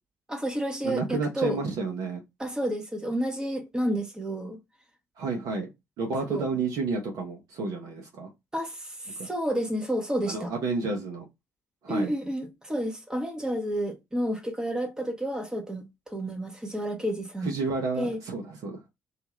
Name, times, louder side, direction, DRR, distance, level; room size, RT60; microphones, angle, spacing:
voice 1, 0.3-1.6 2.4-4.6 6.3-6.5 8.5-10.5 11.9-17.5 18.0-18.2, equal, 10° right, 0.9 m, -30 dB
voice 2, 0.8-2.2 5.2-5.7 6.0-8.3 9.2-9.3 10.3-11.2 11.8-12.1 17.4-18.8, right 3 dB, 55° right, 0.8 m, -30 dB
2.7 x 2.4 x 3.0 m
figure-of-eight pair, 45°, 7 cm